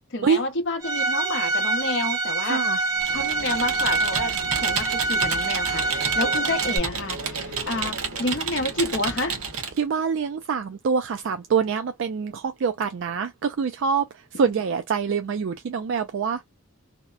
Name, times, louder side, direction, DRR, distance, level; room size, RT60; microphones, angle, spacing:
voice 1, 0.1-2.6 3.1-4.3 4.6-9.4, left 2 dB, 55° left, 0.7 m, -29 dB
Bowed string instrument, 0.8-6.8, right 3 dB, 15° right, 0.7 m, -25 dB
voice 2, 2.4-2.8 9.8-14.1 14.3-16.5, right 6 dB, 55° right, 0.3 m, -25 dB
Computer keyboard, 3.0-9.8, right 5 dB, 75° right, 0.8 m, -30 dB
2.8 x 2.1 x 2.3 m
head